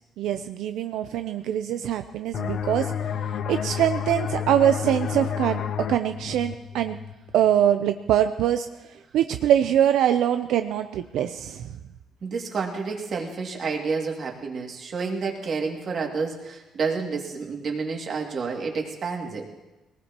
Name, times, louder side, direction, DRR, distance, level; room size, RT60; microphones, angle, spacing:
voice 1, 0.2-2.9 3.3-5.6 5.9-7.0 7.3-8.7 9.1-11.7, right 10 dB, 80° right, 8 dB, 0.5 m, -23 dB
sound 1, 2.3-7.7, left 8 dB, 50° left, 0.5 m, -31 dB
voice 2, 12.2-19.5, right 4 dB, 40° right, 1 dB, 2.3 m, -29 dB
22.0 x 19.5 x 3.0 m, 1.1 s
cardioid pair, 155°, 0 cm